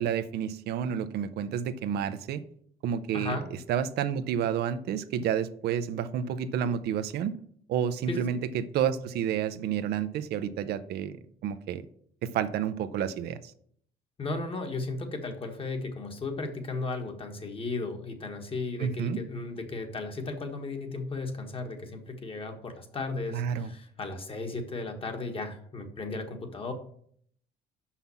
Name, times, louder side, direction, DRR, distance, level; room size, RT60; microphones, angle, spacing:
voice 1, 0.0-2.4 2.8-3.4 3.7-7.3 7.7-11.2 11.4-11.8 12.2-13.5 18.8-19.2 23.3-23.7, right 8 dB, 75° right, 11 dB, 0.6 m, -30 dB
voice 2, 3.1-3.5 8.1-8.2 14.2-26.7, left 3 dB, 35° left, 4 dB, 1.5 m, -35 dB
5.9 x 5.7 x 6.9 m, 0.63 s
cardioid pair, 110°, 17 cm